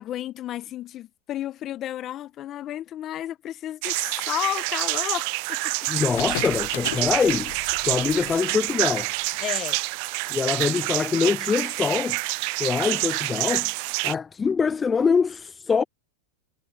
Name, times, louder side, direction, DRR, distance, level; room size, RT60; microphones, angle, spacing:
voice 1, 0.0-5.9 9.4-9.8, left 12 dB, 35° left, 1.4 m, -32 dB
sound 1, 3.8-14.1, right 30 dB, 55° right, 0.4 m, -27 dB
voice 2, 5.9-7.5 7.8-9.1 10.3-12.2 12.6-13.7 14.0-15.8, left 5 dB, 20° left, 0.4 m, -24 dB
sound 2, 6.1-10.0, left 19 dB, 65° left, 0.6 m, -37 dB
hypercardioid pair, 110°, 0 cm